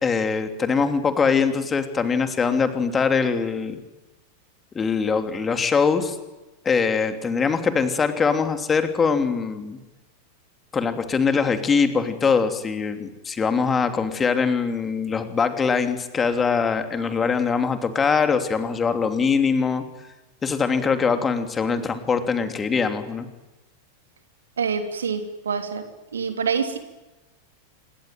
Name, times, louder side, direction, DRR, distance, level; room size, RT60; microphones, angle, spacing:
voice 1, 0.0-3.8 4.7-6.2 6.6-9.8 10.7-19.8 20.4-23.3, left 5 dB, 20° left, 7 dB, 3.1 m, -22 dB
voice 2, 24.6-25.9 26.1-26.8, right 6 dB, 70° right, 7 dB, 3.1 m, -26 dB
27.0 x 22.0 x 9.4 m, 1.1 s
figure-of-eight pair, 90°, 0 cm